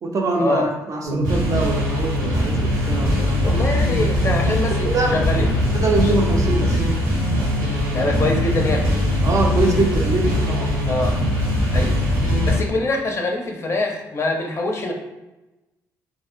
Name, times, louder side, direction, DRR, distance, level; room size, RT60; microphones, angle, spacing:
voice 1, 0.0-3.6 4.8-6.8 9.2-10.8, right 2 dB, 45° right, 1 dB, 0.5 m, -24 dB
sound 1, 1.0-12.6, left 1 dB, 85° right, 0.9 m, -21 dB
voice 2, 3.4-4.7 5.1-5.5 7.9-8.9 10.9-11.1 11.7-11.9 12.4-14.9, left 2 dB, 35° left, 2 dB, 0.5 m, -24 dB
2.5 x 2.1 x 2.4 m, 1.0 s
supercardioid pair, 65°, 7 cm